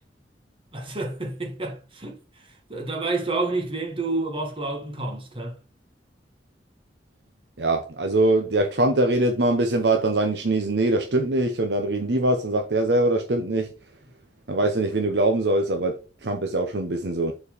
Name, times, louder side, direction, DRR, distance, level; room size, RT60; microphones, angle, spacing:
voice 1, 0.7-2.2 2.7-5.6, right 2 dB, 30° right, 1.9 m, -29 dB
voice 2, 7.6-13.7 14.5-17.3, right 2 dB, 75° right, 1.0 m, -23 dB
7.1 x 4.5 x 5.1 m
head